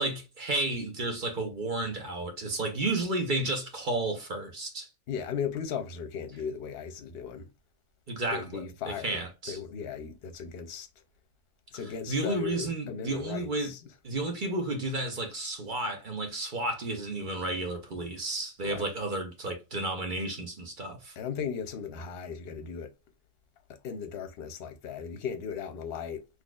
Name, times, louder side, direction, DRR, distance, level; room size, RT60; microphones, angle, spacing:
voice 1, 0.0-4.9 8.1-9.6 12.1-13.7 14.0-21.1, right 2 dB, 45° right, 0.8 m, -32 dB
voice 2, 5.1-7.5 8.3-10.9 11.7-13.8 18.6-18.9 21.2-22.9 23.8-26.3, left 7 dB, 55° left, 0.8 m, -37 dB
4.0 x 2.9 x 2.3 m
omnidirectional pair, 1.4 m